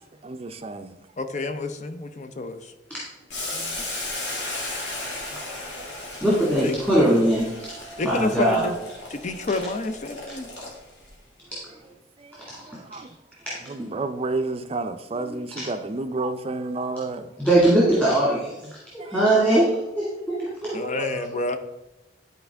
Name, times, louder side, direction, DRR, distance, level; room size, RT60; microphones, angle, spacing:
voice 1, 0.2-1.0 3.5-4.0 5.3-5.4 5.8-5.9 12.2-13.1 13.7-17.3 19.0-19.2 20.8-21.1, right 3 dB, 35° right, 0.5 m, -31 dB
voice 2, 1.2-2.7 6.6-6.7 8.0-8.8 9.1-10.5 20.7-21.6, left 2 dB, 40° left, 0.5 m, -28 dB
Boiling, 3.3-11.1, left 2 dB, 90° left, 1.9 m, -35 dB
voice 3, 6.2-8.6 11.5-11.6 12.5-12.6 13.5-13.6 15.2-15.6 17.4-18.6 18.9-21.3, right 1 dB, 10° left, 1.9 m, -21 dB
11.5 x 4.4 x 3.4 m
head